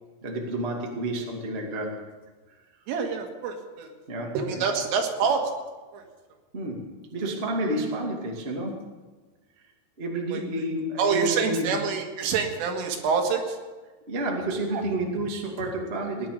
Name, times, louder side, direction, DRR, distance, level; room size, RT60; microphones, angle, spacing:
voice 1, 0.2-2.0 4.1-4.6 6.5-6.8 7.1-8.8 10.0-11.7 14.1-16.3, right 1 dB, 35° right, 0 dB, 0.9 m, -30 dB
voice 2, 2.9-3.9 4.4-5.5 5.9-6.0 10.3-10.4 11.0-13.6 14.7-14.8, right 5 dB, 90° right, 3 dB, 4.3 m, -26 dB
17.5 x 10.5 x 6.8 m, 1.3 s
omnidirectional pair, 5.6 m